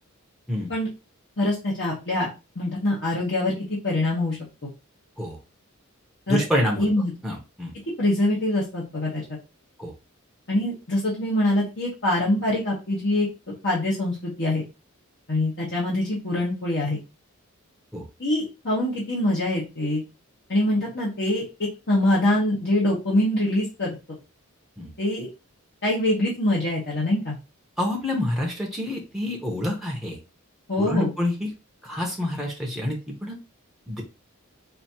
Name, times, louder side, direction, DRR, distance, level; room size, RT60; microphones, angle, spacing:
voice 1, 1.4-2.3 2.5-3.5 3.8-4.4 4.6-4.7 6.3-6.4 6.8-7.1 8.0-9.2 10.5-13.3 13.6-14.6 15.3-17.0 18.2-20.0 20.5-21.4 21.9-24.0 25.0-25.3 25.8-27.4 30.7-31.1, left 1 dB, 55° left, -6 dB, 1.3 m, -24 dB
voice 2, 6.3-6.9 7.2-7.7 9.8-9.9 17.9-18.1 24.8-24.9 27.8-30.2 30.8-31.5 31.8-33.4 33.9-34.0, left 1 dB, ahead, -2 dB, 0.8 m, -27 dB
4.2 x 2.8 x 2.8 m, 0.28 s
head